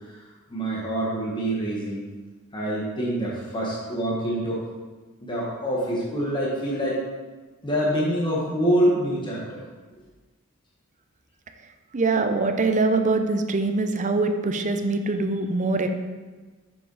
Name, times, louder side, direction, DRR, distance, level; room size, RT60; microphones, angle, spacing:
voice 1, 0.5-2.0 2.5-4.6 5.2-7.0 7.6-9.6, right 1 dB, 20° left, -5 dB, 1.2 m, -25 dB
voice 2, 11.9-15.9, right 3 dB, 35° right, 6 dB, 0.6 m, -23 dB
7.1 x 5.9 x 4.0 m, 1.3 s
head